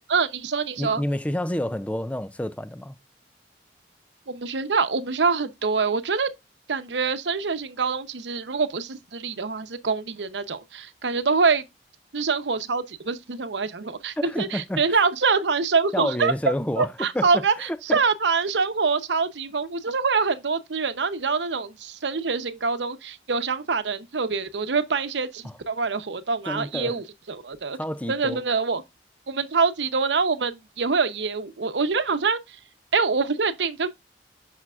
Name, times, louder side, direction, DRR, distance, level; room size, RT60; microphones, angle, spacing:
voice 1, 0.1-1.0 4.3-6.3 6.7-11.7 12.1-16.3 16.8-27.8 28.1-28.8 29.3-32.4 32.9-33.9, right 4 dB, 85° right, 0.8 m, -25 dB
voice 2, 0.8-2.9 14.2-15.0 15.9-17.3 17.6-18.0 25.4-25.5 26.5-27.0 27.8-28.4, left 1 dB, 10° left, 0.3 m, -29 dB
8.2 x 5.9 x 2.4 m
head